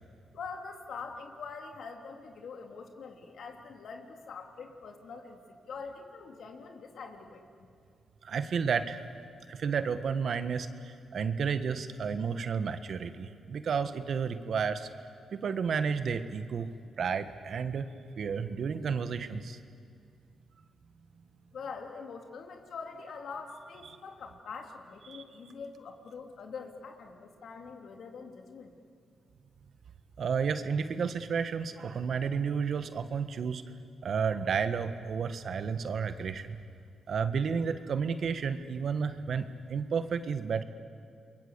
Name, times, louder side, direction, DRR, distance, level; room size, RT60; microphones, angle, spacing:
voice 1, 0.3-5.4 5.7-7.4 21.5-28.7, left 5 dB, 70° left, 4 dB, 3.1 m, -44 dB
voice 2, 8.2-9.1 9.5-14.9 15.3-19.6 25.1-25.2 30.2-33.6 34.0-36.6 37.1-40.6, right 6 dB, 65° right, 10 dB, 1.5 m, -32 dB
28.0 x 22.5 x 8.2 m, 2.3 s
cardioid pair, 65°, 0 cm